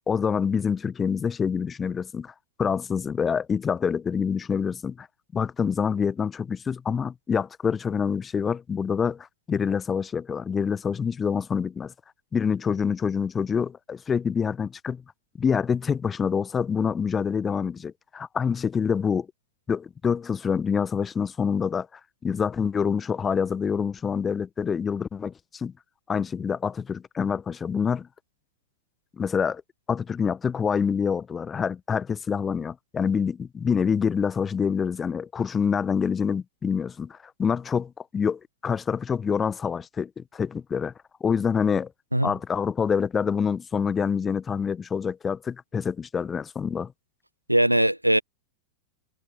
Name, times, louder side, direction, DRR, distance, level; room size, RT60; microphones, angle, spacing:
voice 1, 0.1-2.3 2.6-5.1 5.3-11.9 12.3-15.0 15.4-19.3 19.7-25.7 26.1-28.1 29.2-29.6 29.9-40.9 41.2-41.9 42.2-46.9, left 6 dB, 20° left, 1.2 m, -26 dB
voice 2, 47.5-48.2, right 1 dB, 90° right, 1.1 m, -20 dB
figure-of-eight pair, 90°, 0 cm